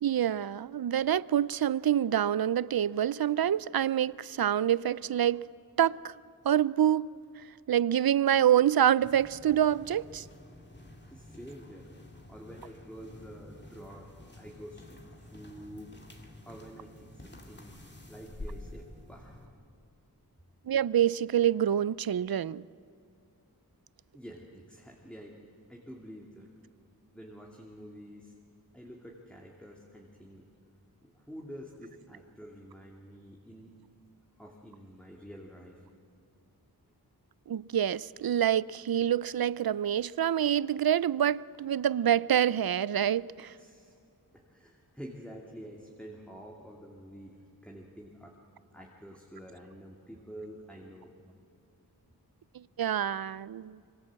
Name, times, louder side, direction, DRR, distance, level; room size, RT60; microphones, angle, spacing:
voice 1, 0.0-5.5 5.8-6.1 6.4-7.1 7.7-10.2 20.7-22.6 37.5-43.5 52.5-53.8, right 10 dB, 70° right, 0.5 m, -26 dB
sound 1, 9.0-19.5, left 1 dB, 30° left, 2.7 m, -49 dB
voice 2, 11.0-11.9 12.3-15.9 16.4-17.7 18.1-19.5 24.1-26.5 27.1-28.4 28.7-30.4 31.0-33.7 34.4-35.9 43.6-44.0 44.3-47.4 47.6-48.4 48.7-51.1 52.0-52.1, equal, 5° left, 2.6 m, -48 dB
25.5 x 25.0 x 7.7 m
wide cardioid pair, 80°, 37 cm